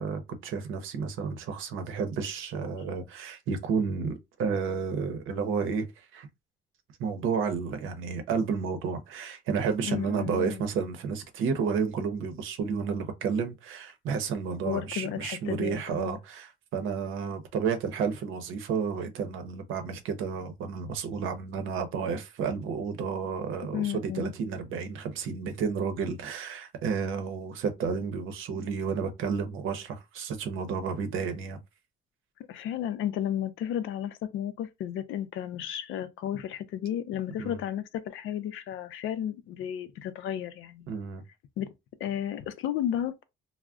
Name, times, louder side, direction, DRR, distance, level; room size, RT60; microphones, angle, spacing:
voice 1, 0.0-5.8 6.1-6.3 7.0-31.6 37.4-37.6 40.9-41.2, right 6 dB, 85° right, 0.7 m, -31 dB
voice 2, 9.8-10.6 14.6-16.1 23.7-24.3 32.5-40.9 41.6-41.7 42.0-43.1, left 10 dB, 85° left, 0.5 m, -33 dB
2.3 x 2.1 x 3.5 m
cardioid pair, 90°, 20 cm